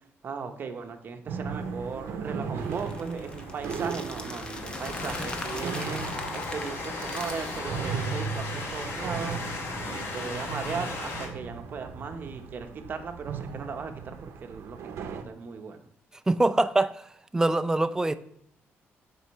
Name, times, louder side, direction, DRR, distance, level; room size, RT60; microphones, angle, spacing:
voice 1, 0.2-6.0 6.3-9.4 9.8-15.8, right 5 dB, 45° right, 6 dB, 0.9 m, -37 dB
sound 1, 1.3-15.2, right 6 dB, 80° right, 0.7 m, -37 dB
Train, 1.5-11.3, left 3 dB, 65° left, 1.6 m, -37 dB
sound 2, 2.6-7.6, left 2 dB, 20° left, 0.8 m, -42 dB
voice 2, 16.3-17.0 17.3-18.2, right 2 dB, 15° right, 12 dB, 0.4 m, -23 dB
7.9 x 5.5 x 3.1 m, 0.71 s
cardioid pair, 110°, 5 cm